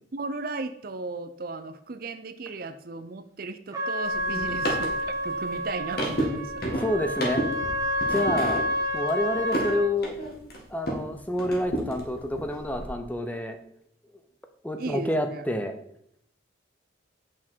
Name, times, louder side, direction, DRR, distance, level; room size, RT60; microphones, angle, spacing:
voice 1, 0.1-6.5 8.1-8.2 14.8-15.4, right 3 dB, 50° right, 11 dB, 0.5 m, -36 dB
Trumpet, 3.7-9.9, equal, 15° right, 1.4 m, -29 dB
sound 1, 4.0-11.1 11.4-12.9, right 1 dB, 50° left, 2.0 m, -32 dB
voice 2, 6.8-7.5 8.1-8.6 8.9-10.1 10.7-13.6 14.6-15.7, left 1 dB, 10° left, 7 dB, 0.6 m, -28 dB
8.2 x 6.3 x 4.5 m, 0.72 s
head